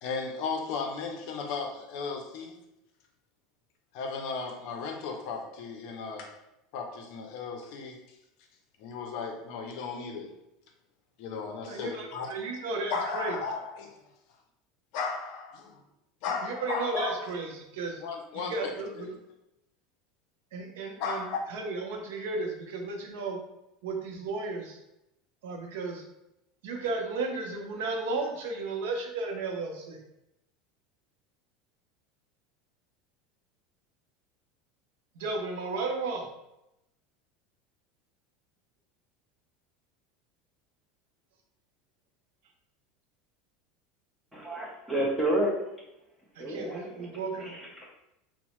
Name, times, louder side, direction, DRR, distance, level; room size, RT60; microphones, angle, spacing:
voice 1, 0.0-2.6 3.9-6.4 6.7-8.0 8.8-10.3 11.2-12.3 12.9-14.0 14.9-15.8 16.2-17.3 18.0-18.7 19.0-19.1 21.0-21.4, left 5 dB, 60° left, 3 dB, 0.5 m, -35 dB
voice 2, 11.7-13.4 16.4-18.0 18.3-19.1 20.5-23.4 23.8-24.8 25.4-26.0 26.6-30.0 35.1-36.3 46.3-47.6, right 3 dB, 80° right, 2 dB, 0.6 m, -34 dB
voice 3, 44.3-45.5 46.4-47.1, right 1 dB, 5° right, -4 dB, 0.8 m, -29 dB
2.8 x 2.0 x 3.0 m, 0.87 s
supercardioid pair, 140°, 0 cm